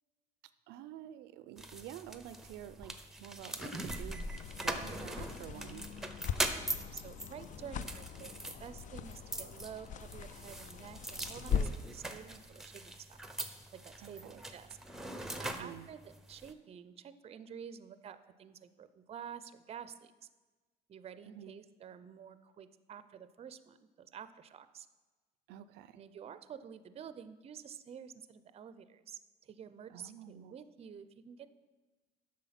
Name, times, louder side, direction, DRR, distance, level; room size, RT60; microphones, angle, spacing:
voice 1, 0.7-4.3 4.6-5.9 14.0-14.4 15.4-15.9 21.3-21.5 25.5-26.0 29.9-30.6, right 11 dB, 90° right, 14 dB, 0.4 m, -49 dB
sound 1, 1.6-16.5, right 1 dB, ahead, 0.7 m, -42 dB
sound 2, 3.9-12.0, left 6 dB, 50° left, 0.4 m, -41 dB
voice 2, 6.6-13.2 13.7-14.8 15.4-20.3 20.9-24.9 26.0-31.5, right 8 dB, 35° right, 12 dB, 0.5 m, -50 dB
8.3 x 6.2 x 5.7 m, 1.3 s
cardioid pair, 110°, 17 cm